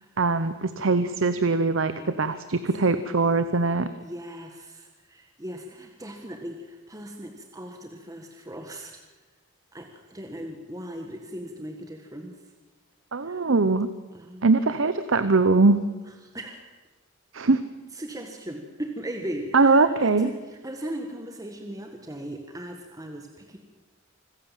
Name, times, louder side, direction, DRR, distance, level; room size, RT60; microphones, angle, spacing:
voice 1, 0.2-3.9 13.1-13.9 14.4-15.8 17.3-17.6 19.5-20.3, right 3 dB, 70° right, 12 dB, 0.9 m, -21 dB
voice 2, 1.9-2.4 4.0-8.9 9.7-12.3 13.2-13.4 14.1-14.5 16.3-16.6 17.9-23.6, right 1 dB, 15° right, 3 dB, 1.6 m, -38 dB
25.5 x 15.5 x 7.5 m, 1.2 s
head